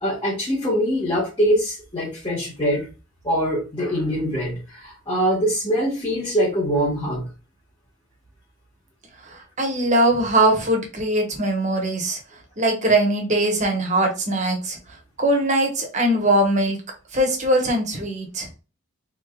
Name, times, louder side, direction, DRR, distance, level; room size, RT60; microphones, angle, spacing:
voice 1, 0.0-2.9 3.2-7.2, equal, 20° left, -8 dB, 1.5 m, -23 dB
voice 2, 9.2-12.2 12.6-14.8 15.2-16.8 17.1-18.5, right 1 dB, 35° right, 2 dB, 1.2 m, -21 dB
3.9 x 3.7 x 2.3 m, 0.31 s
head